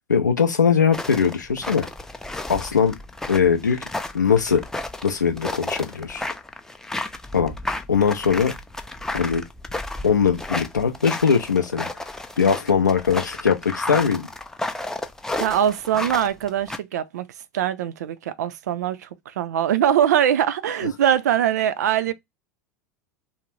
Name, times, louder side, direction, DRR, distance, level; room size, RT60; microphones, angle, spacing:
voice 1, 0.1-1.9 2.5-2.9 3.3-3.8 4.1-4.6 5.0-6.2 7.3-7.5 7.9-8.5 9.1-9.4 10.0-12.0 12.4-14.3, left 6 dB, 85° left, 0.5 m, -20 dB
sound 1, 0.9-16.8, left 2 dB, 5° left, 0.4 m, -32 dB
voice 2, 15.4-17.3 17.5-22.1, right 10 dB, 70° right, 0.4 m, -22 dB
2.5 x 2.1 x 3.0 m
figure-of-eight pair, 85°, 9 cm